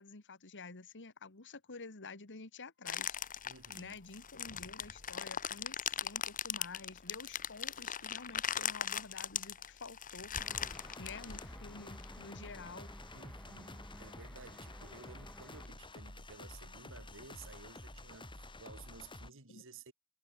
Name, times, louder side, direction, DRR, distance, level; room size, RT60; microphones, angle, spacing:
voice 1, 0.0-3.2 3.7-10.3 11.0-12.9 19.5-19.6, left 4 dB, 55° left, 1.9 m, -50 dB
sound 1, 2.9-12.1, left 8 dB, 40° left, 1.5 m, -39 dB
voice 2, 3.4-4.0 13.1-19.9, right 4 dB, 65° right, 2.7 m, -55 dB
sound 2, 10.4-15.7, left 1 dB, 5° left, 1.7 m, -55 dB
sound 3, 10.5-19.3, left 2 dB, 25° left, 4.1 m, -50 dB
head